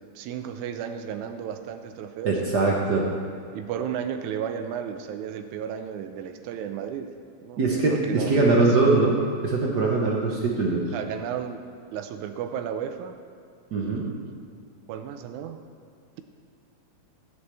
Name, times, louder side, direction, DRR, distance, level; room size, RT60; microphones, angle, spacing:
voice 1, 0.0-2.4 3.5-7.1 7.4-8.9 10.9-11.6 11.9-13.2 13.8-14.4 14.9-15.6, right 8 dB, 90° right, 7 dB, 2.0 m, -33 dB
voice 2, 2.2-3.1 7.6-10.8 13.7-14.1, right 3 dB, 70° right, -2 dB, 0.9 m, -22 dB
14.0 x 9.4 x 3.4 m, 2.3 s
omnidirectional pair, 3.3 m